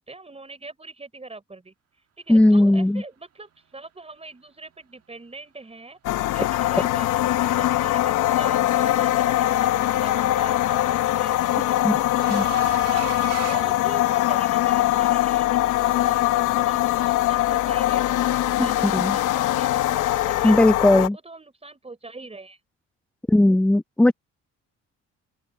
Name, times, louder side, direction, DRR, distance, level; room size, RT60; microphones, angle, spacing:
voice 1, 0.0-1.7 2.2-6.0 6.3-7.1 7.4-12.4 12.9-13.1 13.4-18.1 18.5-20.6 20.9-22.6, right 3 dB, 20° right, 4.3 m, -42 dB
voice 2, 2.3-3.0 11.8-12.0 12.3-12.4 18.6-19.2 20.4-21.2 23.3-24.1, left 1 dB, 5° left, 0.4 m, -18 dB
sound 1, 6.0-21.1, left 14 dB, 90° left, 1.0 m, -22 dB
sound 2, 8.6-9.0 10.5-14.5, right 8 dB, 55° right, 1.6 m, -37 dB
open air
cardioid pair, 90°, 30 cm